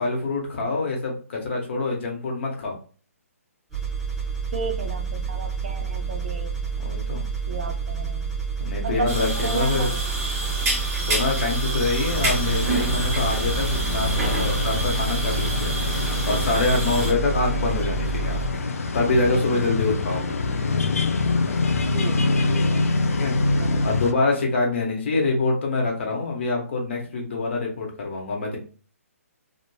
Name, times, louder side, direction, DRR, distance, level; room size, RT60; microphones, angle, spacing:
voice 1, 0.0-2.8 6.8-7.2 8.6-9.9 11.1-15.7 16.3-18.6 18.9-20.3 23.1-23.4 23.8-28.6, left 3 dB, 50° left, 0 dB, 1.1 m, -25 dB
sound 1, 3.7-18.5, right 5 dB, ahead, 0.7 m, -29 dB
voice 2, 4.5-6.7 7.5-8.3 8.8-10.0 21.9-24.0, right 4 dB, 45° right, 5 dB, 0.6 m, -34 dB
sound 2, 9.1-17.1, right 2 dB, 20° right, 1.1 m, -29 dB
sound 3, 12.1-24.1, left 3 dB, 70° left, 0.5 m, -25 dB
3.2 x 2.4 x 2.2 m, 0.40 s
figure-of-eight pair, 140°, 8 cm